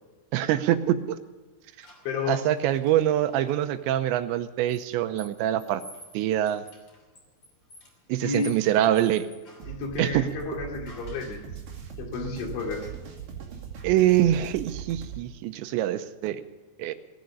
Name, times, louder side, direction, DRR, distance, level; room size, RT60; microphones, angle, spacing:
voice 1, 0.3-1.2 2.3-5.8 6.1-6.6 8.1-9.3 10.0-10.3 13.8-16.4 16.8-16.9, right 12 dB, 90° right, 10 dB, 3.1 m, -24 dB
sound 1, 1.8-3.7 4.7-9.8 10.9-11.5, equal, 30° left, 3.2 m, -51 dB
voice 2, 2.1-2.5 8.2-8.6 9.7-11.4 12.0-12.9, left 4 dB, 90° left, 1 dB, 4.8 m, -31 dB
sound 2, 9.6-15.2, right 9 dB, 55° right, 3.8 m, -40 dB
18.0 x 10.5 x 6.9 m, 1.3 s
omnidirectional pair, 5.2 m